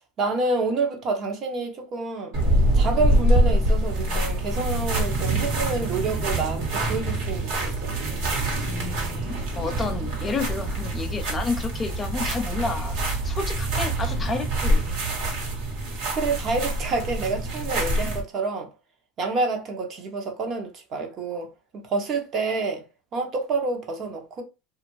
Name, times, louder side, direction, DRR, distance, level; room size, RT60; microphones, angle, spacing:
voice 1, 0.0-2.3 2.7-8.0 16.1-18.7 19.2-22.8 23.1-24.4, right 3 dB, 40° right, 0.8 m, -28 dB
sound 1, 2.3-18.2, right 1 dB, 70° right, 1.2 m, -25 dB
voice 2, 8.7-13.0 13.2-15.0, left 4 dB, 20° left, 0.4 m, -31 dB
2.6 x 2.4 x 2.9 m
supercardioid pair, 125°, 0 cm